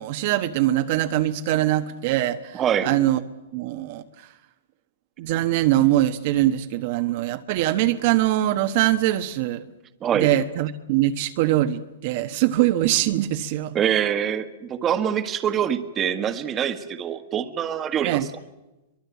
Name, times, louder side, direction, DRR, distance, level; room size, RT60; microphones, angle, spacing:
voice 1, 0.0-3.2 3.5-4.3 5.2-9.6 10.1-13.8 18.0-18.3, right 14 dB, 50° right, 8 dB, 1.2 m, -22 dB
voice 2, 2.5-2.9 10.0-10.3 13.7-18.2, right 9 dB, 25° right, 10 dB, 1.6 m, -24 dB
23.5 x 22.5 x 8.3 m, 1.0 s
hypercardioid pair, 145°, 0 cm